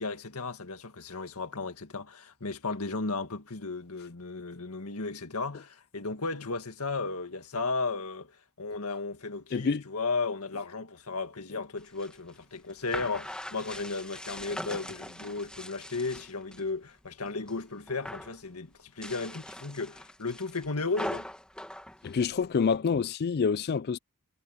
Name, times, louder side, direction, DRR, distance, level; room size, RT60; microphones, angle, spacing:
voice 1, 0.0-21.3, left 3 dB, 80° left, 2.0 m, -35 dB
voice 2, 9.5-9.8 22.0-24.0, left 5 dB, 45° left, 0.4 m, -27 dB
sound 1, 11.8-16.7 17.1-17.6 17.9-18.4 18.9-22.8, left 1 dB, 5° left, 1.9 m, -41 dB
head